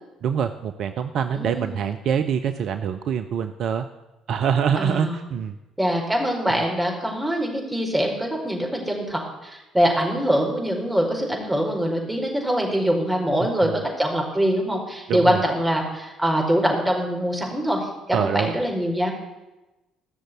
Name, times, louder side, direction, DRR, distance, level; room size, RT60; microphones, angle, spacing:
voice 1, 0.2-3.9 4.3-5.5 13.4-13.8 15.1-15.4 18.1-18.5, right 7 dB, 55° right, 9 dB, 0.6 m, -25 dB
voice 2, 1.3-1.8 4.8-5.2 5.8-19.1, equal, 10° right, -1 dB, 4.7 m, -23 dB
16.0 x 6.5 x 9.4 m, 1.0 s
figure-of-eight pair, 50°, 0 cm